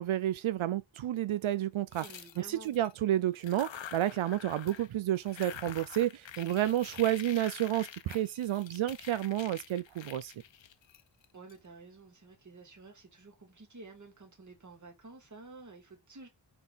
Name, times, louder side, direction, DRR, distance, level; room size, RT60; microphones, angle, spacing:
voice 1, 0.0-2.0 2.4-10.3, right 12 dB, 85° right, 0.6 m, -30 dB
sound 1, 1.9-2.9 3.3-4.9 5.1-11.5, left 9 dB, 70° left, 0.9 m, -47 dB
voice 2, 1.9-2.7 6.3-6.7 11.3-16.3, right 3 dB, 40° right, 2.4 m, -51 dB
9.6 x 4.0 x 4.0 m
wide cardioid pair, 150°, 46 cm